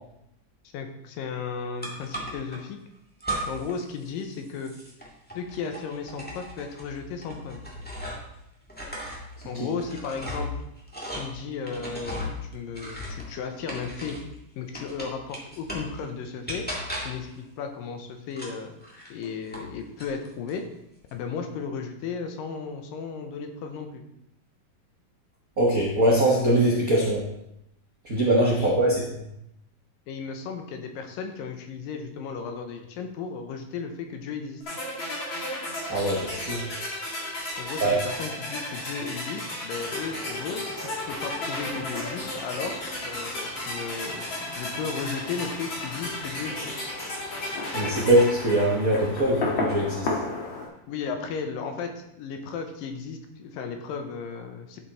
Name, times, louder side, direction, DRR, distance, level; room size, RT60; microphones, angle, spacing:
voice 1, 0.7-2.8 3.5-4.7 5.4-7.6 9.5-10.6 11.2-14.2 14.6-16.7 17.0-18.8 19.1-20.7 21.1-24.0 28.6-29.0 30.1-34.6 37.6-46.7 50.9-54.8, left 5 dB, 80° left, 5 dB, 2.5 m, -35 dB
sound 1, 1.8-2.6 3.2-3.8 4.1-8.3 8.7-14.3 14.7-16.0 16.5-17.3 18.3-19.7 20.0-20.6, equal, 15° left, 0.3 m, -36 dB
voice 2, 25.6-27.3 28.0-29.0 35.9-36.6 37.8-38.0 47.7-50.1, right 1 dB, 75° right, -4 dB, 0.8 m, -22 dB
sound 2, 34.7-49.6, left 1 dB, 40° left, 2.6 m, -34 dB
Fireworks, 39.7-50.7, left 3 dB, 55° left, 2.1 m, -36 dB
11.5 x 5.1 x 4.1 m, 0.82 s
omnidirectional pair, 4.1 m